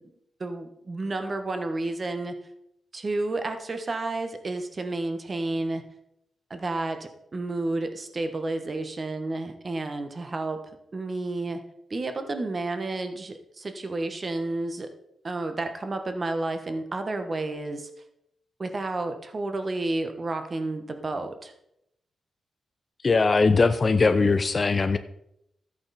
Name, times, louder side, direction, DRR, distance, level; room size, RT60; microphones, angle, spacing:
voice 1, 0.4-2.3 2.9-5.8 6.5-10.6 10.9-11.6 11.9-14.9 15.2-17.9 18.6-21.5, right 2 dB, 30° right, 7 dB, 1.1 m, -31 dB
voice 2, 23.0-25.0, left 4 dB, 30° left, 10 dB, 0.5 m, -20 dB
13.5 x 8.8 x 4.2 m, 0.78 s
wide cardioid pair, 145°, 0 cm